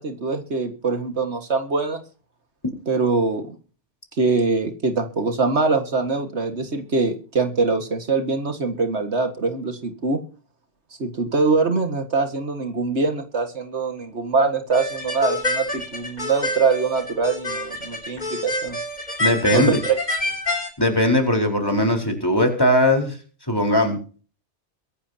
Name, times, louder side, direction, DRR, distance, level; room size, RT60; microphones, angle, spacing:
voice 1, 0.0-2.0 2.9-3.5 4.2-10.2 11.0-18.8 19.5-20.0, right 4 dB, 70° right, 7 dB, 2.1 m, -23 dB
sound 1, 14.7-20.7, left 1 dB, 40° left, 3.4 m, -27 dB
voice 2, 19.2-19.8 20.8-23.2 23.5-24.0, left 1 dB, 20° left, 2 dB, 4.5 m, -19 dB
23.5 x 11.0 x 2.9 m, 0.38 s
omnidirectional pair, 1.2 m